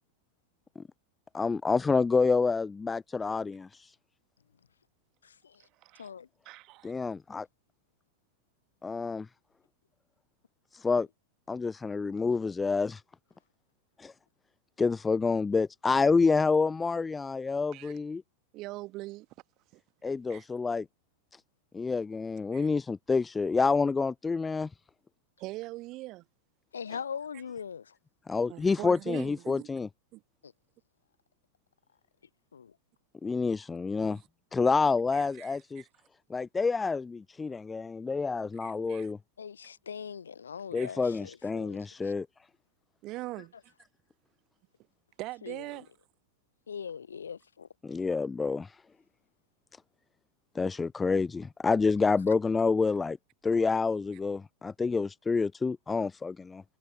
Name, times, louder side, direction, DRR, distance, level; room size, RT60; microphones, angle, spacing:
voice 1, 1.3-3.9 6.8-7.5 8.8-9.3 10.7-11.1 11.5-13.0 14.0-14.1 14.8-18.2 20.0-20.9 21.7-24.7 28.3-29.9 33.2-34.2 34.5-35.8 36.3-39.2 40.7-42.3 47.8-48.8 50.5-53.2 53.4-56.6, left 4 dB, 15° left, 0.5 m, -28 dB
voice 2, 5.2-5.7 6.0-6.3 26.7-28.0 30.4-30.5 32.5-32.8 39.4-42.1 43.4-43.5 45.4-45.9 46.7-47.7 52.3-52.4, left 7 dB, 70° left, 0.8 m, -41 dB
voice 3, 6.4-6.9 17.7-17.9 18.5-19.3 19.7-19.8 20.3-20.4 22.5-22.7 25.4-26.2 28.5-29.7 30.1-30.2 34.0-34.2 35.1-35.8 38.6-39.1 40.8-40.9 43.0-43.5 45.2-45.9, right 19 dB, 40° right, 1.5 m, -42 dB
figure-of-eight pair, 90°, 0 cm